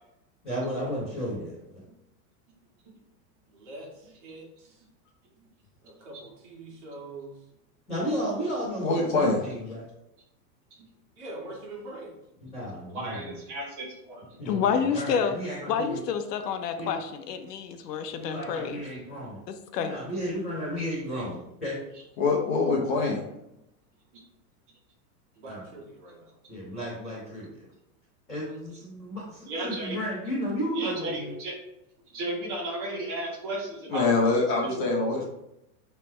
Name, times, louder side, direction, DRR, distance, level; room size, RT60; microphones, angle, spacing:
voice 1, 0.4-1.7 7.9-9.9 12.5-13.4 14.4-16.0 16.8-17.0 18.2-19.4 19.8-21.8 25.5-25.6 26.5-27.6 28.3-31.3, equal, 5° left, -17 dB, 0.4 m, -33 dB
voice 2, 3.5-4.8 5.8-7.5 11.2-12.2 25.3-26.3, right 2 dB, 45° right, -3 dB, 2.0 m, -43 dB
voice 3, 8.8-9.4 22.2-23.2 33.9-35.2, left 3 dB, 30° left, -1 dB, 0.9 m, -24 dB
voice 4, 12.9-14.2 29.4-30.0 30.7-31.5 32.1-34.3 34.6-34.8, right 1 dB, 30° right, -2 dB, 1.5 m, -34 dB
voice 5, 14.5-15.3 15.7-18.8 19.5-20.0, left 7 dB, 75° left, 8 dB, 0.9 m, -29 dB
8.5 x 3.4 x 3.3 m, 0.85 s
supercardioid pair, 175°, 48 cm